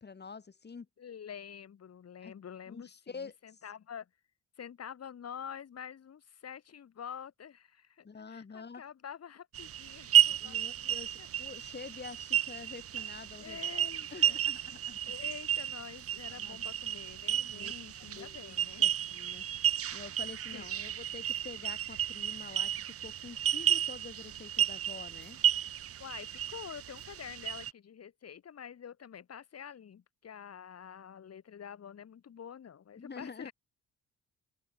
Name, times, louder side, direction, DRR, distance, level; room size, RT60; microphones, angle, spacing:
voice 1, 0.0-0.9 2.2-2.3 2.7-3.6 8.0-8.8 10.4-15.2 16.3-16.6 17.5-19.5 19.9-25.4 33.0-33.5, left 5 dB, 35° left, 5.7 m, -47 dB
voice 2, 1.0-4.1 4.6-11.3 13.4-14.4 15.0-18.8 19.6-19.7 20.5-20.7 26.0-33.5, left 8 dB, 55° left, 7.8 m, -47 dB
sound 1, 9.5-27.7, right 10 dB, 50° right, 0.8 m, -32 dB
open air
cardioid pair, 90°, 30 cm